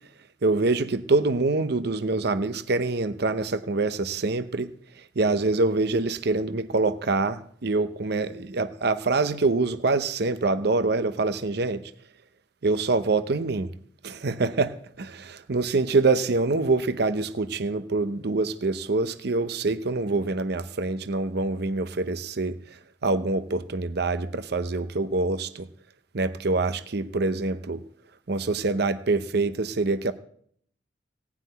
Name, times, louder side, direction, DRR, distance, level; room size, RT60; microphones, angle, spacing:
voice 1, 0.4-4.7 5.2-11.9 12.6-13.7 14.0-25.7 26.1-27.8 28.3-30.1, right 3 dB, 60° right, 0.7 m, -25 dB
17.5 x 6.0 x 9.3 m
head